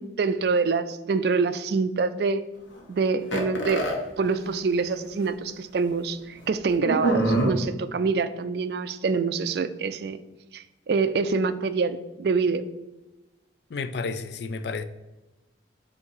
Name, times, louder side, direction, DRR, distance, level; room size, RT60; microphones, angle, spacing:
voice 1, 0.0-2.4 2.9-3.9 4.2-10.2 10.5-12.7, right 4 dB, 55° right, 12 dB, 0.3 m, -26 dB
sound 1, 3.3-4.0 4.9-5.0 5.2-5.3 6.9-7.5, right 1 dB, 85° left, 1.2 m, -24 dB
voice 2, 13.7-14.8, left 4 dB, 65° left, 12 dB, 0.4 m, -31 dB
8.2 x 2.8 x 4.7 m, 1.1 s
head